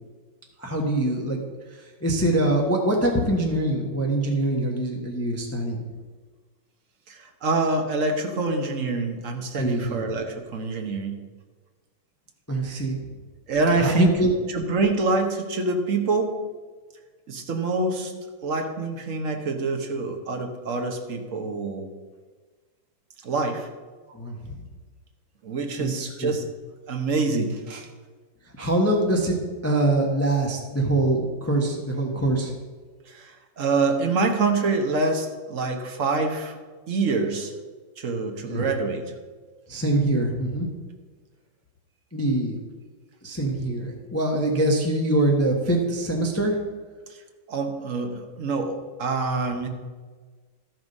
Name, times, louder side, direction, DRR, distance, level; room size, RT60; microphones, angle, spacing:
voice 1, 0.6-1.4 1.7-5.9 9.5-10.0 12.5-13.0 13.8-14.3 24.1-24.6 25.8-26.3 28.6-32.5 38.4-38.7 39.7-40.7 42.1-42.6 43.2-46.6, right 1 dB, 10° left, 0 dB, 0.8 m, -24 dB
voice 2, 7.1-11.2 13.5-14.1 14.5-16.4 17.3-18.1 18.4-21.9 23.2-23.7 25.4-26.5 26.9-27.9 33.1-36.6 36.9-37.5 38.0-39.0 47.5-49.7, right 3 dB, 45° right, 4 dB, 1.3 m, -26 dB
13.0 x 6.2 x 5.4 m, 1.4 s
omnidirectional pair, 2.2 m